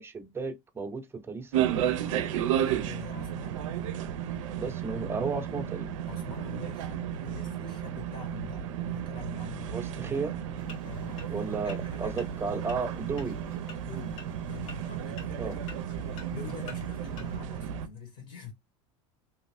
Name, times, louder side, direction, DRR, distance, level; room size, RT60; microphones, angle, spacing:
voice 1, 0.0-1.9 4.6-5.9 9.7-10.3 11.3-13.4 15.4-15.6, right 4 dB, 15° right, 0.6 m, -34 dB
sound 1, 1.5-17.9, right 10 dB, 80° right, 0.5 m, -33 dB
voice 2, 2.4-3.7 6.1-9.8 10.8-13.1 13.8-15.6 15.9-18.5, left 6 dB, 55° left, 1.2 m, -45 dB
sound 2, 10.6-17.4, left 4 dB, 80° left, 1.3 m, -51 dB
2.8 x 2.3 x 3.3 m
hypercardioid pair, 100°, 16 cm